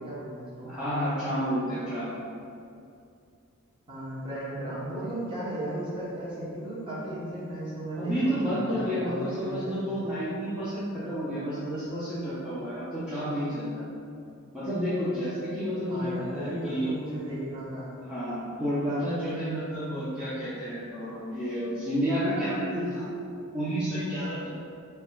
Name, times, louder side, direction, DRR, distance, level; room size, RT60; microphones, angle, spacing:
voice 1, 0.0-0.7 3.9-10.1 15.9-18.0, right 1 dB, 25° right, -9 dB, 1.0 m, -36 dB
voice 2, 0.6-2.1 8.0-13.8 14.5-16.9 18.0-23.0 23.5-24.5, equal, 5° right, -14 dB, 0.7 m, -30 dB
3.5 x 2.3 x 4.3 m, 2.5 s
head